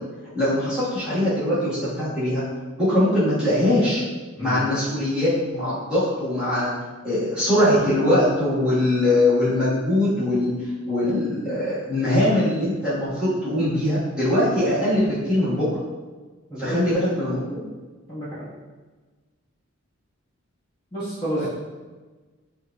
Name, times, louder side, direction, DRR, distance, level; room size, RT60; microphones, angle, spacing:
voice 1, 0.3-2.4 2.8-4.0 4.4-6.7 7.0-10.5 10.8-15.6 16.6-17.6 21.4-21.5, left 1 dB, 5° right, -14 dB, 1.4 m, -22 dB
voice 2, 4.4-4.7 16.5-16.8 18.1-18.5 20.9-21.5, right 1 dB, 25° left, -12 dB, 1.4 m, -30 dB
5.9 x 2.4 x 2.3 m, 1.3 s
head